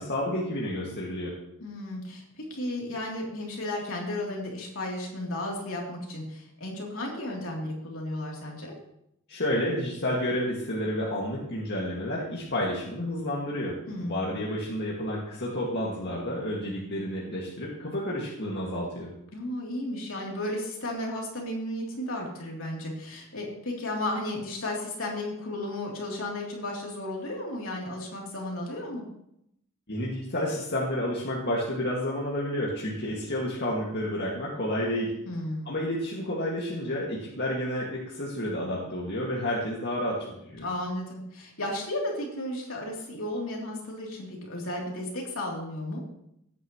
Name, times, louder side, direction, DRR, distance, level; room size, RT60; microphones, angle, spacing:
voice 1, 0.0-1.4 9.3-19.1 29.9-35.1 35.7-40.7, left 1 dB, 55° left, -4 dB, 2.0 m, -30 dB
voice 2, 1.6-8.7 13.9-14.3 19.3-29.0 35.2-35.7 40.6-46.0, left 1 dB, 70° left, -2 dB, 3.2 m, -34 dB
17.5 x 9.1 x 3.1 m, 0.78 s
head